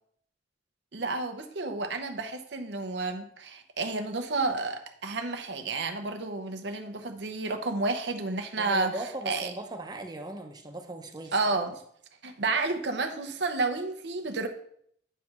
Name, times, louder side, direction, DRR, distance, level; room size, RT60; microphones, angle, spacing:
voice 1, 0.9-9.0 9.3-9.5 11.3-11.8 12.2-14.5, right 3 dB, 75° right, 6 dB, 0.8 m, -31 dB
voice 2, 8.6-11.3, right 1 dB, 25° right, 4 dB, 0.8 m, -38 dB
9.2 x 3.3 x 6.0 m, 0.67 s
head